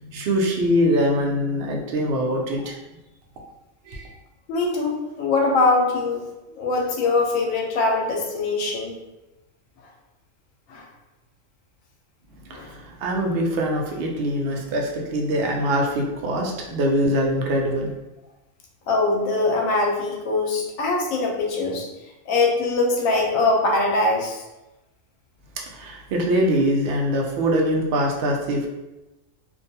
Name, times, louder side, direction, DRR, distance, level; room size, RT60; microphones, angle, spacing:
voice 1, 0.0-2.8 3.8-4.1 12.5-17.9 25.6-28.7, equal, 65° right, 0 dB, 0.6 m, -23 dB
voice 2, 4.5-6.3 6.6-9.0 10.7-10.8 12.5-12.7 18.9-21.9 22.3-24.4, left 3 dB, 85° left, 0 dB, 1.0 m, -22 dB
2.5 x 2.2 x 2.7 m, 0.99 s
omnidirectional pair, 1.4 m